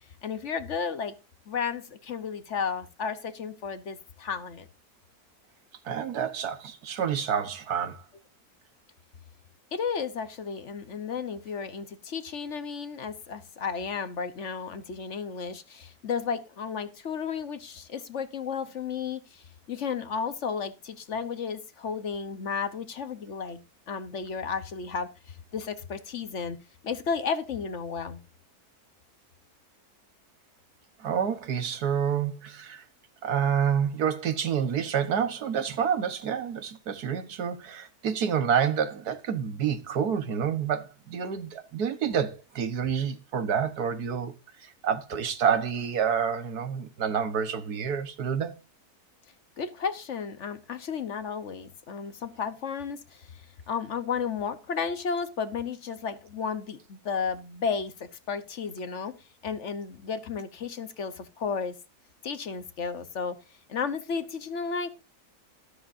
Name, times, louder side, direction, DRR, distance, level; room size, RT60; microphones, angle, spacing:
voice 1, 0.2-1.1 1.5-4.7 9.7-23.6 23.9-26.6 26.8-28.2 49.6-59.2 59.4-61.8 62.2-63.4 63.7-64.9, left 6 dB, 55° left, 1.2 m, -33 dB
voice 2, 5.8-8.0 31.0-32.8 33.2-44.3 44.6-48.5, right 7 dB, 85° right, 1.7 m, -28 dB
13.0 x 12.5 x 2.6 m
omnidirectional pair, 1.6 m